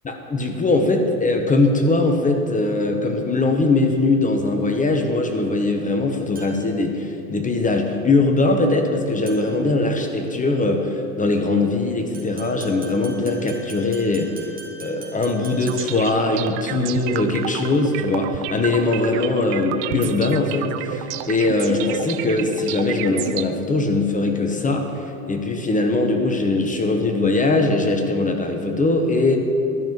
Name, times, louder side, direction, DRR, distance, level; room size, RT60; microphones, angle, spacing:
voice 1, 0.0-14.5 14.8-29.4, left 2 dB, 20° left, 4 dB, 1.1 m, -21 dB
sound 1, 6.4-6.8 9.3-9.7 12.1-16.1, right 3 dB, 20° right, 2.7 m, -42 dB
sound 2, 15.6-23.4, right 12 dB, 45° right, 0.6 m, -31 dB
12.5 x 6.4 x 8.2 m, 2.8 s
figure-of-eight pair, 75°, 43 cm